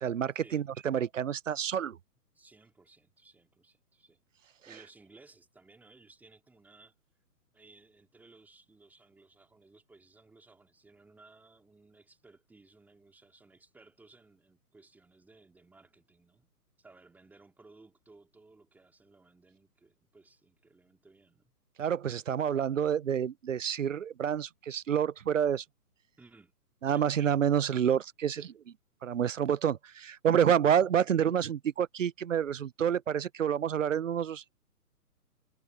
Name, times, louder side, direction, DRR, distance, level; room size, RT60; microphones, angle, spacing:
voice 1, 0.0-2.0 21.8-25.6 26.8-28.4 29.0-34.5, right 8 dB, 55° right, 0.6 m, -28 dB
voice 2, 2.3-6.9 7.5-16.5 16.8-21.5 26.2-26.5 26.9-27.1 28.2-28.5, right 3 dB, 5° right, 2.5 m, -59 dB
figure-of-eight pair, 130°, 48 cm